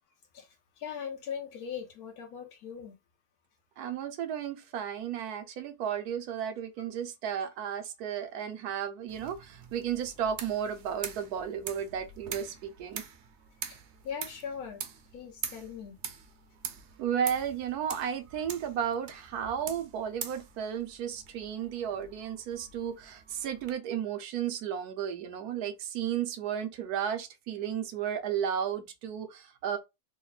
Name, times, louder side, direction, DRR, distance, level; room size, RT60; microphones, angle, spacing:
voice 1, 0.8-3.0 13.7-13.8 14.0-14.8 15.1-16.0, left 7 dB, 80° left, 1.1 m, -40 dB
voice 2, 3.8-13.0 17.0-29.8, right 8 dB, 85° right, 1.2 m, -33 dB
sound 1, 9.1-23.7, right 7 dB, 60° right, 0.8 m, -44 dB
3.4 x 2.2 x 4.0 m
omnidirectional pair, 1.6 m